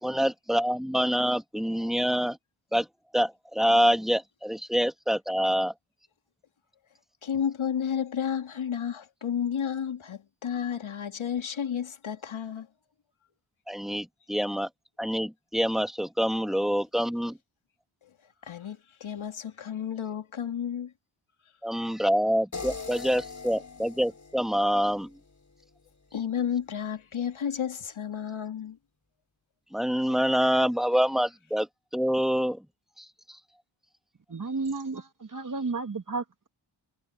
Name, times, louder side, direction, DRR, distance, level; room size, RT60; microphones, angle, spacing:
voice 1, 0.0-2.4 2.7-2.9 3.1-5.7 13.7-14.7 15.0-17.4 21.6-25.1 29.7-31.7 31.9-32.6 33.0-33.1, equal, ahead, 2.3 m, -26 dB
voice 2, 7.2-12.7 18.4-20.9 26.1-28.8, left 8 dB, 75° left, 2.1 m, -32 dB
sound 1, 22.5-25.6, left 4 dB, 35° left, 5.6 m, -42 dB
voice 3, 34.3-36.5, right 3 dB, 40° right, 2.2 m, -33 dB
wide cardioid pair, 110°, 49 cm